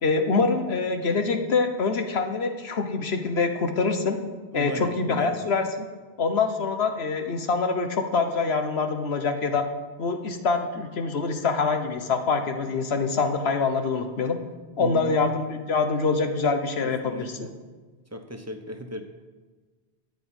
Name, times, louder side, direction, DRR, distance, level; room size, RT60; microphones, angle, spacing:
voice 1, 0.0-4.2 4.5-5.6 6.2-9.6 10.0-14.4 14.8-17.5, left 4 dB, 80° left, 6 dB, 1.4 m, -25 dB
voice 2, 4.5-5.4 14.8-15.2 16.8-17.5 18.1-19.0, right 1 dB, 15° right, 5 dB, 1.1 m, -36 dB
12.5 x 5.2 x 8.9 m, 1.3 s
omnidirectional pair, 1.0 m